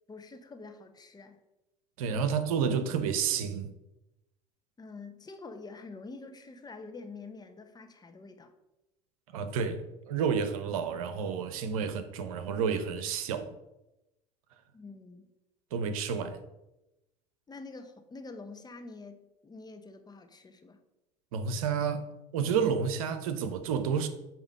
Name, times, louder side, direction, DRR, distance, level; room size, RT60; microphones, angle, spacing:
voice 1, 0.1-1.4 2.1-2.2 4.8-8.5 14.7-15.3 17.5-20.8, left 3 dB, 25° left, 1.0 m, -46 dB
voice 2, 2.0-3.7 9.3-13.6 15.7-16.4 21.3-24.1, right 6 dB, 85° right, 0.8 m, -30 dB
8.8 x 2.9 x 6.4 m
hypercardioid pair, 75°, 18 cm